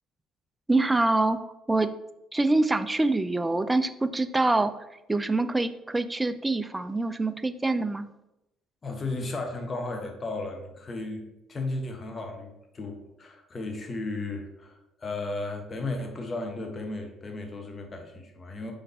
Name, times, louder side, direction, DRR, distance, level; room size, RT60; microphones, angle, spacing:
voice 1, 0.7-1.4 1.7-1.9 2.3-4.7 5.1-8.1, right 2 dB, 15° right, 11 dB, 0.4 m, -25 dB
voice 2, 8.8-11.2 11.5-18.7, left 2 dB, 35° left, 3 dB, 1.0 m, -34 dB
5.1 x 3.8 x 2.7 m, 0.91 s
hypercardioid pair, 55°, 0 cm